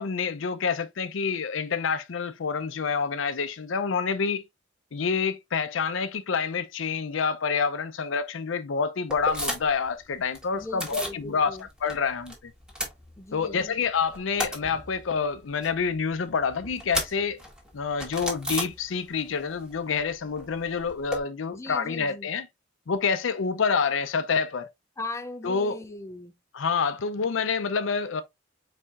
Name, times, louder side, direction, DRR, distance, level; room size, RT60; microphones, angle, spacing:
voice 1, 0.0-4.5 4.9-12.5 13.3-17.4 17.7-22.5 22.9-24.7 25.4-25.8 26.5-28.2, left 5 dB, 80° left, 0.5 m, -27 dB
sound 1, 9.1-9.9 10.1-11.2 11.6-12.4 12.6-13.6 13.9-19.3 19.6-21.2, equal, 5° right, 1.5 m, -35 dB
voice 2, 10.5-11.7 13.2-13.7 21.5-22.3 25.0-26.3, left 2 dB, 15° left, 0.5 m, -39 dB
4.5 x 4.2 x 2.4 m
head